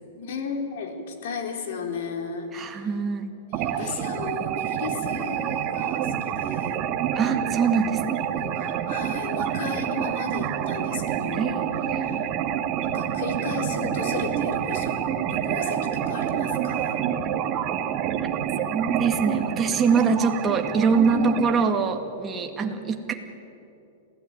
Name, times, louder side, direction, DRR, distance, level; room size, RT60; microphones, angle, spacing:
voice 1, 0.2-2.9 3.5-6.8 8.4-11.6 11.9-12.3 12.8-14.9 15.3-17.0 21.1-21.6 22.4-22.5, left 5 dB, 65° left, 4 dB, 4.0 m, -35 dB
voice 2, 2.5-3.3 3.8-4.0 7.1-8.3 11.3-12.1 18.2-18.3 18.6-23.1, right 5 dB, 15° right, 4 dB, 2.0 m, -24 dB
sound 1, 3.5-21.6, right 9 dB, 35° right, 1.7 m, -28 dB
27.0 x 16.5 x 9.8 m, 2.7 s
supercardioid pair, 155°, 0 cm